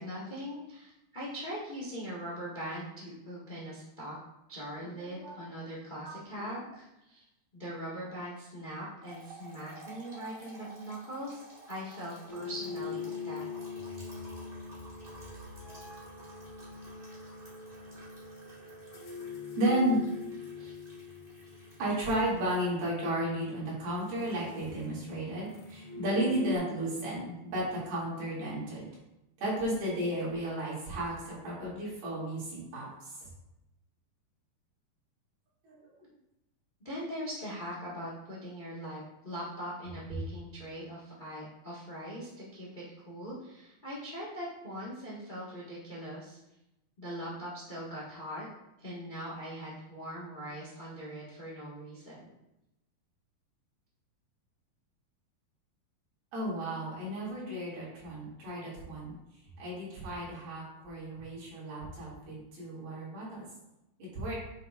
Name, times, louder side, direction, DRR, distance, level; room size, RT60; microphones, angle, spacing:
voice 1, 0.0-4.2 4.5-7.2 7.5-13.4 20.6-20.7 36.8-46.4 47.0-48.5 48.8-52.2, equal, 50° left, -6 dB, 0.5 m, -41 dB
voice 2, 5.0-5.4 6.0-6.6 15.6-15.7 19.6-20.0 21.8-28.8 29.4-33.3 35.6-36.1 56.3-59.2 59.6-63.4 64.1-64.3, right 1 dB, 90° right, -7 dB, 4.7 m, -33 dB
sound 1, 9.0-22.8 23.8-25.2, right 2 dB, 30° right, 0.9 m, -53 dB
sound 2, 12.3-26.6, left 5 dB, 70° left, 2.0 m, -43 dB
9.1 x 6.1 x 2.5 m, 0.90 s
omnidirectional pair, 4.3 m